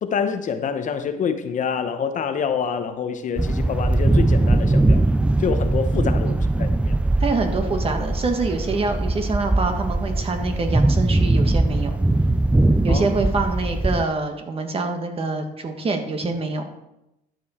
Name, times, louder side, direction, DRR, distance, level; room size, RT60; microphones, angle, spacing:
voice 1, 0.0-5.0 5.4-7.0 12.9-13.0, left 7 dB, 50° left, 8 dB, 0.9 m, -26 dB
sound 1, 3.4-14.0, right 2 dB, 5° right, 0.3 m, -20 dB
voice 2, 7.2-12.0 12.8-16.7, right 3 dB, 35° right, 5 dB, 1.5 m, -25 dB
12.0 x 7.0 x 4.3 m, 0.88 s
cardioid pair, 110°, 17 cm